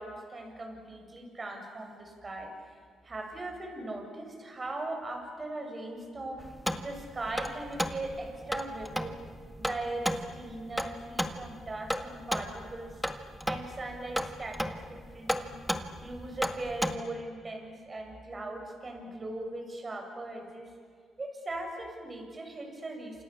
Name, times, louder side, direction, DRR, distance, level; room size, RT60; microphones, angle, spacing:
voice 1, 0.0-2.5 3.0-6.5 6.8-9.1 9.6-13.0 13.5-15.6 16.0-20.7 21.2-23.2, right 2 dB, 30° right, 3 dB, 7.4 m, -39 dB
sound 1, 6.4-16.9, equal, ahead, 1.9 m, -35 dB
28.5 x 28.0 x 7.3 m, 2.2 s
cardioid pair, 90°, 0 cm